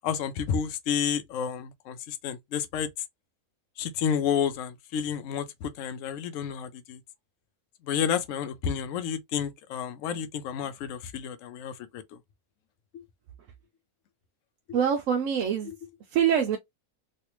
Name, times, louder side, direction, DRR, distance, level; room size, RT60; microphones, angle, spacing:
voice 1, 0.0-2.9 3.8-7.0 7.8-12.0, left 8 dB, 65° left, 0.9 m, -30 dB
voice 2, 14.7-15.7 16.1-16.6, right 8 dB, 70° right, 0.9 m, -24 dB
3.3 x 2.5 x 2.9 m
omnidirectional pair, 1.6 m